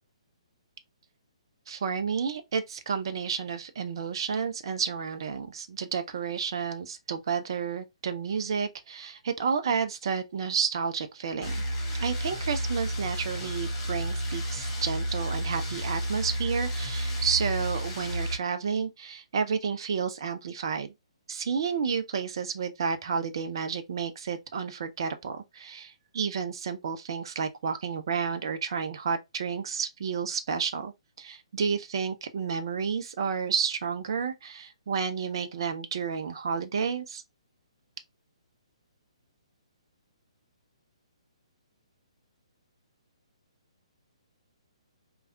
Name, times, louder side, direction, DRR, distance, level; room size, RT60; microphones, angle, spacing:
voice 1, 1.7-11.6 12.0-20.9 21.3-37.2, right 6 dB, 50° right, 0.6 m, -31 dB
sound 1, 11.4-18.4, equal, 30° left, 1.4 m, -31 dB
3.4 x 2.3 x 2.5 m
figure-of-eight pair, 130°, 3 cm